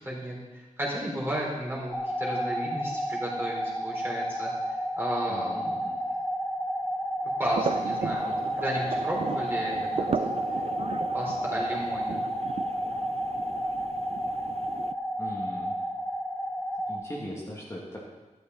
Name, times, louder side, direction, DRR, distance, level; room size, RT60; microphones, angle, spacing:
voice 1, 0.0-4.5 5.0-5.8 7.2-9.9 10.2-10.4 11.1-12.2, right 1 dB, 15° right, -4 dB, 4.1 m, -33 dB
sound 1, 1.9-17.0, equal, 5° left, 1.9 m, -31 dB
voice 2, 5.3-6.0 15.2-15.8 16.9-18.0, equal, 20° left, -6 dB, 2.4 m, -39 dB
sound 2, 7.4-14.9, right 6 dB, 50° right, 0.4 m, -36 dB
13.0 x 12.0 x 4.2 m, 1.2 s
wide cardioid pair, 130°, 13 cm